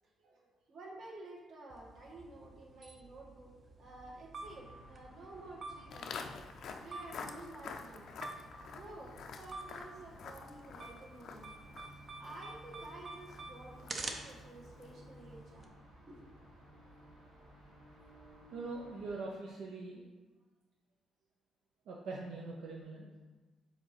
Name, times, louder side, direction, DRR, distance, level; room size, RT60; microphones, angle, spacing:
voice 1, 0.0-6.2 6.8-8.4 8.7-11.5 12.2-15.7 16.1-16.6, right 2 dB, 50° right, -3 dB, 1.6 m, -52 dB
sound 1, 1.7-15.6, right 3 dB, 30° right, 0.6 m, -49 dB
sound 2, 4.4-19.2, right 1 dB, 90° right, 2.0 m, -58 dB
Walk footsteps, 5.9-15.1, left 5 dB, 55° left, 0.5 m, -49 dB
voice 2, 18.5-20.0 21.9-23.1, right 3 dB, 75° right, -2 dB, 0.7 m, -43 dB
5.0 x 3.9 x 5.8 m, 1.2 s
cardioid pair, 155°, 0 cm